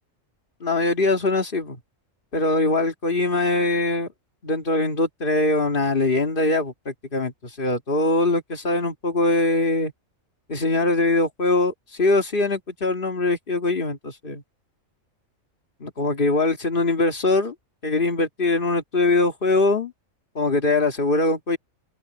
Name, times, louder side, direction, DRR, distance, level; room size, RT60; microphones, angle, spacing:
voice 1, 0.6-1.8 2.3-4.1 4.4-9.9 10.5-14.4 15.8-17.5 17.8-19.9 20.4-21.6, left 2 dB, 40° left, 2.2 m, -22 dB
open air
omnidirectional pair, 1.4 m